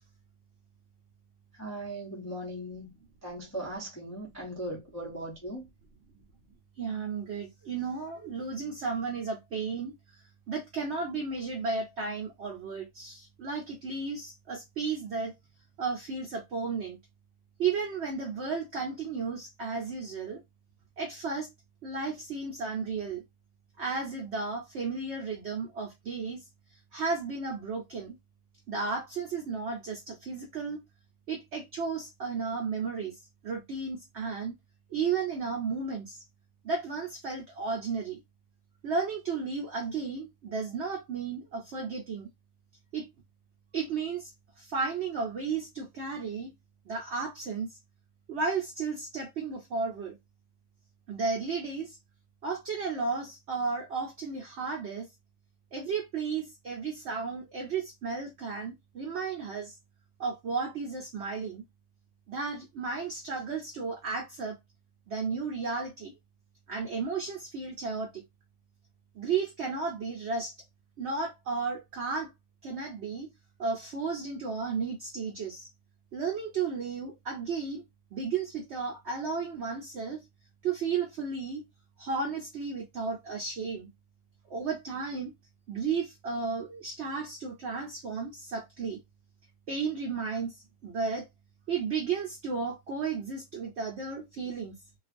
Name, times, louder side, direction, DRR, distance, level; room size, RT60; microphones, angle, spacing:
voice 1, 1.5-2.9 3.2-5.7, right 1 dB, 25° left, 0.3 m, -38 dB
voice 2, 6.8-9.9 10.5-15.3 15.8-17.0 17.6-20.4 21.0-21.5 21.8-23.2 23.8-26.4 26.9-28.2 28.7-30.8 31.3-33.2 33.4-34.6 34.9-36.2 36.6-38.2 38.8-42.3 42.9-43.1 43.7-44.3 44.6-46.5 46.9-47.7 48.3-50.2 51.1-52.0 52.4-55.1 55.7-59.7 60.2-61.6 62.3-64.6 65.1-66.1 66.7-68.2 69.2-70.5 71.0-72.3 72.6-73.3 73.6-75.7 76.1-77.8 78.1-80.2 80.6-81.6 82.0-83.9 84.5-85.3 85.7-89.0 89.7-91.3 91.7-94.7, right 5 dB, 55° right, 0.8 m, -33 dB
2.4 x 2.3 x 2.5 m
omnidirectional pair, 1.7 m